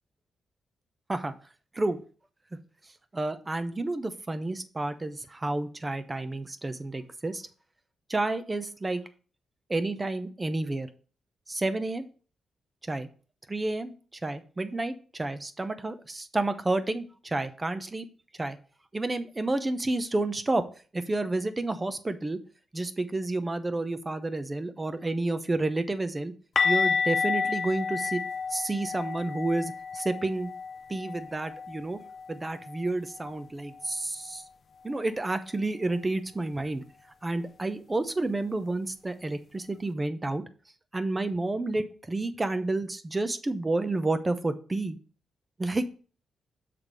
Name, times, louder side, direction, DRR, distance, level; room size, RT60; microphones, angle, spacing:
voice 1, 3.1-7.4 8.1-9.0 9.7-10.9 11.5-12.1 12.9-13.1 13.5-13.9 14.2-18.1 18.4-18.6 18.9-20.6 20.9-22.4 22.7-26.3 26.6-28.2 28.5-30.5 30.9-32.0 32.3-34.4 34.8-36.8 37.2-40.4 40.9-45.0 45.6-45.8, right 2 dB, 20° right, 11 dB, 0.7 m, -30 dB
sound 1, 26.6-32.3 32.6-32.8 33.2-33.3 36.6-36.7, left 5 dB, 50° left, 0.5 m, -30 dB
6.7 x 3.6 x 6.0 m, 0.40 s
cardioid pair, 90°, 0 cm